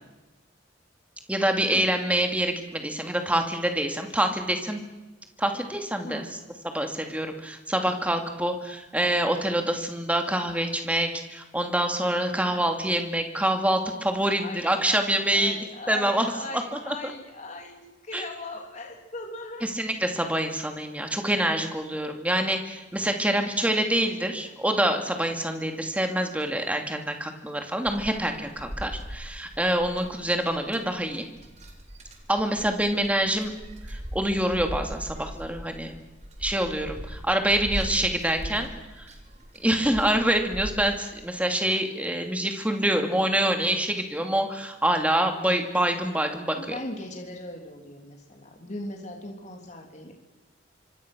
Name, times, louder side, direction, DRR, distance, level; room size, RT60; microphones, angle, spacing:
voice 1, 1.3-4.8 5.4-6.2 6.6-15.6 15.9-16.3 16.5-16.9 18.1-18.2 19.6-31.2 32.3-33.5 33.9-35.9 36.4-38.7 39.0-39.1 39.6-46.7, right 1 dB, 10° right, 4 dB, 2.6 m, -26 dB
voice 2, 14.4-19.7 23.3-23.9 24.2-24.7 37.7-38.7 46.6-50.1, left 2 dB, 40° left, 1 dB, 3.5 m, -40 dB
sound 1, 27.8-40.7, equal, 40° right, 3.9 m, -39 dB
25.5 x 25.5 x 6.4 m, 1.1 s
head